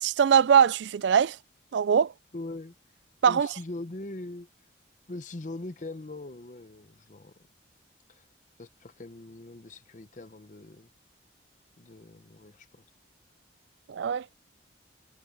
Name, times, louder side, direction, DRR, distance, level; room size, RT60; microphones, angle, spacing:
voice 1, 0.0-1.4 1.7-2.1 3.2-3.5 13.9-14.3, right 7 dB, 65° right, 0.3 m, -21 dB
voice 2, 2.3-2.7 3.3-4.5 5.1-7.3 8.1-8.3 8.6-10.9 11.8-12.8, left 2 dB, 40° left, 0.7 m, -41 dB
head